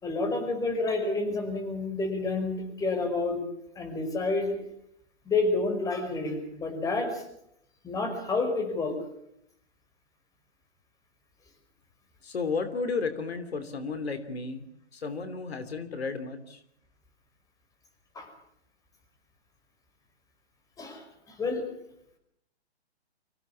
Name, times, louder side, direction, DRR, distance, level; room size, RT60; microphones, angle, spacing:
voice 1, 0.0-3.4 3.8-4.6 5.3-7.2 7.8-9.0 18.2-18.3 20.8-21.6, left 3 dB, 10° left, 4 dB, 5.2 m, -29 dB
voice 2, 12.2-16.6, left 4 dB, 65° left, 10 dB, 3.0 m, -33 dB
25.5 x 16.5 x 8.5 m, 0.74 s
hypercardioid pair, 140°, 34 cm